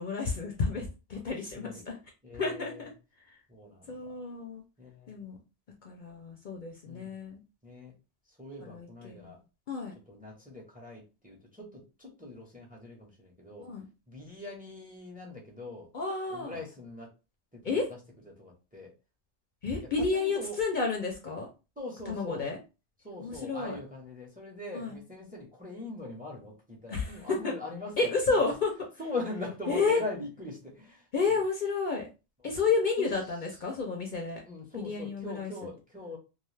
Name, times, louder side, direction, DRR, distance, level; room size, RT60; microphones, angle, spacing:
voice 1, 0.0-2.0 2.4-2.9 3.2-3.4 3.9-4.6 5.1-5.4 5.8-7.4 8.6-9.4 9.7-9.9 13.6-13.8 15.9-16.6 17.6-17.9 19.6-21.5 22.1-22.6 23.2-23.8 24.7-25.0 26.9-27.1 27.4-27.5 28.0-28.7 29.7-30.0 31.1-32.1 32.4-34.4 34.8-35.5, left 4 dB, 55° left, 1 dB, 0.6 m, -31 dB
voice 2, 2.2-2.9 3.5-4.1 4.8-5.1 6.8-7.1 7.6-7.9 8.3-9.4 10.1-13.7 14.1-15.9 16.3-17.1 17.5-18.0 18.2-18.9 19.8-20.6 21.8-22.5 23.0-28.5 29.0-31.4 32.4-32.5 33.0-33.1 34.4-36.2, left 2 dB, 10° right, -1 dB, 0.7 m, -42 dB
2.4 x 2.3 x 3.2 m, 0.30 s
omnidirectional pair, 1.1 m